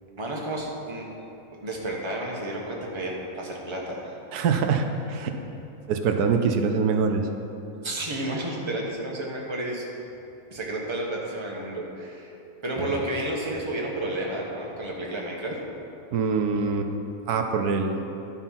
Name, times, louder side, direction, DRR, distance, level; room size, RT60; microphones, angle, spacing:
voice 1, 0.2-1.0 1.6-4.2 7.8-9.8 10.5-12.3 12.6-15.6, right 1 dB, 20° right, -2 dB, 1.2 m, -31 dB
voice 2, 4.3-5.4 5.9-7.3 16.1-16.9 17.3-18.0, right 5 dB, 90° right, 5 dB, 1.3 m, -24 dB
11.0 x 5.7 x 5.7 m, 2.9 s
omnidirectional pair, 1.6 m